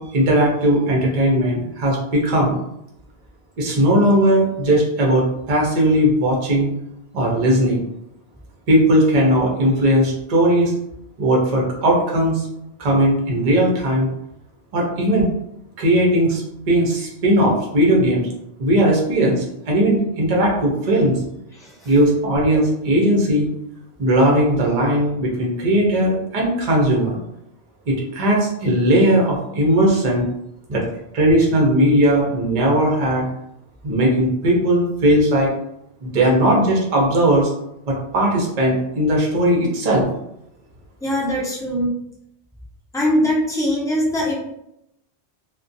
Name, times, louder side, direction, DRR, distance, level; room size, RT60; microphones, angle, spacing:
voice 1, 0.0-2.6 3.6-6.7 7.1-7.8 8.7-10.7 11.2-12.5 12.8-14.1 14.7-15.3 15.8-16.4 16.7-18.3 18.6-21.2 21.8-23.5 24.0-27.2 27.9-30.2 30.7-30.8 31.1-33.3 33.8-35.5 36.0-37.5 37.9-40.1, right 1 dB, 45° right, -2 dB, 0.6 m, -18 dB
voice 2, 21.5-21.9 41.0-41.9 42.9-44.3, equal, 5° left, -5 dB, 0.4 m, -21 dB
2.4 x 2.2 x 2.6 m, 0.80 s
omnidirectional pair, 1.1 m